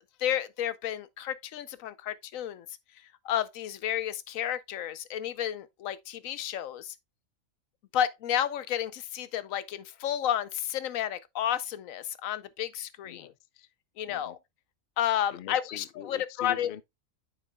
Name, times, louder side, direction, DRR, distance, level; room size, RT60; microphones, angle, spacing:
voice 1, 0.2-2.7 3.2-6.9 7.9-13.3 14.0-14.4 15.0-16.7, left 10 dB, 80° left, 1.0 m, -31 dB
voice 2, 13.0-13.7 14.1-14.4 15.3-16.8, left 10 dB, 60° left, 0.6 m, -44 dB
9.0 x 6.8 x 2.2 m
omnidirectional pair, 1.4 m